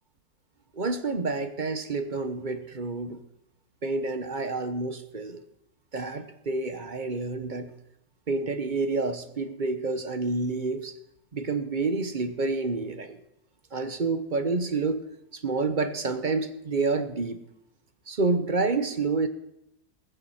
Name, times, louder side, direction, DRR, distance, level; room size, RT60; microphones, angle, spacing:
voice 1, 0.7-3.2 3.8-5.4 5.9-7.7 8.3-11.0 11.3-13.2 13.7-15.0 15.3-17.4 18.1-19.3, right 3 dB, 35° right, 10 dB, 0.9 m, -28 dB
20.0 x 7.0 x 7.1 m, 0.82 s
omnidirectional pair, 1.7 m